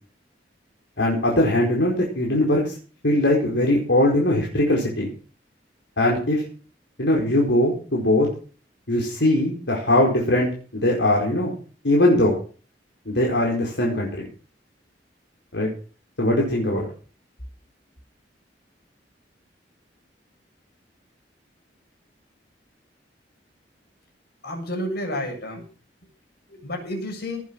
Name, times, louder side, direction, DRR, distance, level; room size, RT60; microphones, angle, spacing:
voice 1, 1.0-2.7 3.0-5.1 6.0-6.4 7.0-8.3 8.9-11.5 11.8-12.4 13.0-14.3 15.5-15.7 16.2-16.9, left 1 dB, 80° left, -2 dB, 4.8 m, -20 dB
voice 2, 24.4-25.6 26.5-27.4, left 1 dB, 60° left, 3 dB, 7.3 m, -30 dB
18.5 x 8.9 x 6.5 m, 0.39 s
head